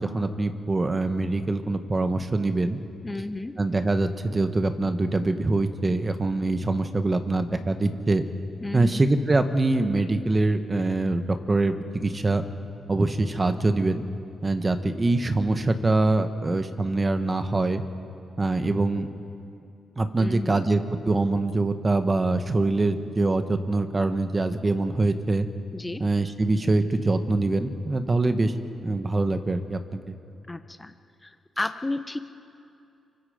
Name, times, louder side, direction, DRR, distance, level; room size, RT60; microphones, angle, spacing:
voice 1, 0.0-2.8 3.6-8.2 8.7-12.4 12.9-14.0 14.4-17.8 18.4-19.1 20.0-20.8 21.1-25.5 26.0-28.5 28.8-29.8 30.1-30.2, right 2 dB, 30° right, 8 dB, 1.5 m, -24 dB
voice 2, 3.0-3.5 8.6-9.0 20.1-20.6 25.7-26.0 30.5-30.9 31.2-32.2, left 2 dB, 20° left, 9 dB, 0.9 m, -32 dB
24.5 x 23.5 x 5.2 m, 2.6 s
cardioid pair, 65°, 0 cm